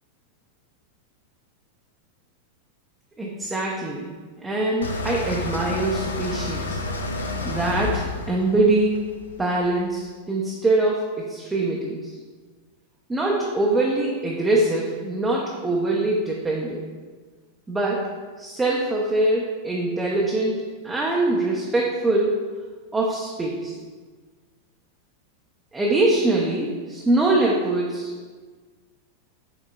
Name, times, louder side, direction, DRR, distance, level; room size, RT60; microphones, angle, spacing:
voice 1, 3.2-4.1 4.4-6.8 7.2-9.0 9.4-12.1 13.1-16.8 17.7-18.1 18.4-22.4 22.9-23.7 25.7-28.1, right 2 dB, 10° right, -3 dB, 0.5 m, -23 dB
sound 1, 4.8-9.8, left 2 dB, 70° left, 0.4 m, -30 dB
5.9 x 3.6 x 2.3 m, 1.4 s
figure-of-eight pair, 90°, 0 cm